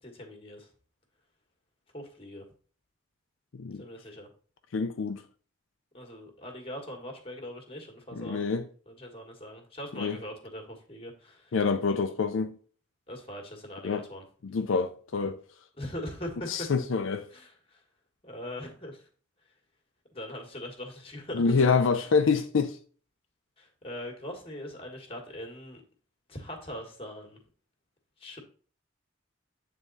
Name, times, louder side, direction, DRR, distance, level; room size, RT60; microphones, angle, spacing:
voice 1, 0.0-0.7 1.9-2.4 3.7-4.3 5.9-8.6 8.9-11.6 13.1-14.2 15.8-16.7 17.3-17.8 18.2-19.1 20.1-21.6 22.0-22.1 23.6-25.8 26.3-27.4 28.2-28.4, left 1 dB, 30° left, 1.5 m, -41 dB
voice 2, 4.7-5.2 8.2-8.6 10.0-10.2 11.5-12.6 13.8-14.0 14.4-15.4 16.5-17.3 21.3-22.8, left 5 dB, 80° left, 0.5 m, -26 dB
8.8 x 3.7 x 4.0 m
head